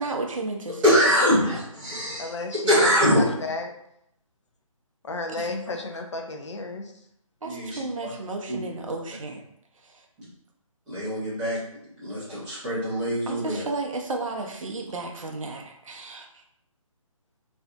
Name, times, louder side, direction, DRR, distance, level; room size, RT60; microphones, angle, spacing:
voice 1, 0.0-0.9 5.3-5.5 7.4-9.4 9.8-10.0 13.3-16.3, right 3 dB, 65° right, 3 dB, 0.5 m, -33 dB
voice 2, 0.8-3.2 7.4-8.1 8.5-8.6 10.9-11.6 12.0-13.6, equal, 5° right, -13 dB, 0.4 m, -23 dB
voice 3, 2.2-3.7 5.0-6.9, left 3 dB, 55° left, 4 dB, 0.4 m, -33 dB
2.5 x 2.5 x 2.3 m, 0.75 s
figure-of-eight pair, 145°, 18 cm